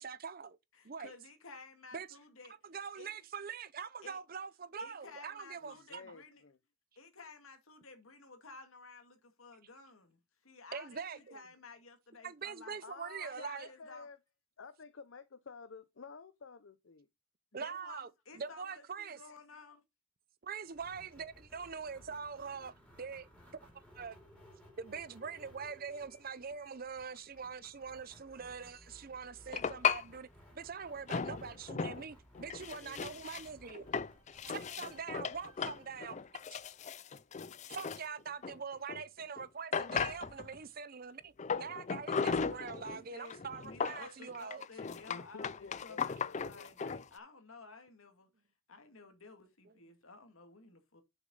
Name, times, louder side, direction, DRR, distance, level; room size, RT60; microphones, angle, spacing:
voice 1, 0.0-0.6 0.8-1.1 1.9-2.1 2.6-6.0 10.7-11.4 12.2-13.7 17.5-18.1 18.3-19.2 20.4-23.3 23.7-24.2 24.8-30.3 30.5-33.8 34.5-36.6 37.7-44.7, right 6 dB, 45° right, 0.6 m, -43 dB
voice 2, 0.7-2.6 3.0-3.1 4.0-4.2 4.8-6.4 7.0-12.8 13.2-14.1 17.5-19.8 34.8-34.9 42.9-48.3 48.7-51.0, left 3 dB, 90° left, 2.2 m, -54 dB
voice 3, 5.6-6.6 12.8-14.2 14.6-17.1 32.5-33.3 45.1-46.7, left 5 dB, 70° left, 0.7 m, -52 dB
sound 1, 20.7-37.2, equal, 10° left, 3.6 m, -60 dB
sound 2, 29.5-30.0 31.1-32.1 32.4-39.0 39.4-39.5 39.7-40.6 41.4-43.0 43.3-47.1, left 6 dB, 35° left, 0.4 m, -37 dB
7.2 x 6.3 x 3.9 m
head